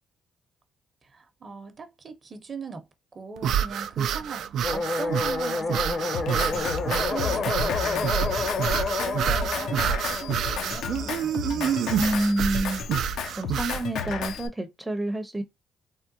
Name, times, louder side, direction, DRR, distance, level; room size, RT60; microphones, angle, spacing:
voice 1, 1.0-2.9 3.1-8.3 8.8-11.8, right 4 dB, 40° right, 0.7 m, -40 dB
sound 1, 3.4-13.8, right 9 dB, 75° right, 0.3 m, -28 dB
sound 2, 4.6-11.6, left 4 dB, 50° left, 0.7 m, -30 dB
Drum kit, 6.1-14.5, left 6 dB, 80° left, 0.5 m, -33 dB
voice 2, 12.0-12.8 13.4-15.4, right 1 dB, 5° right, 0.6 m, -28 dB
3.5 x 2.1 x 2.6 m
cardioid pair, 90°, 0 cm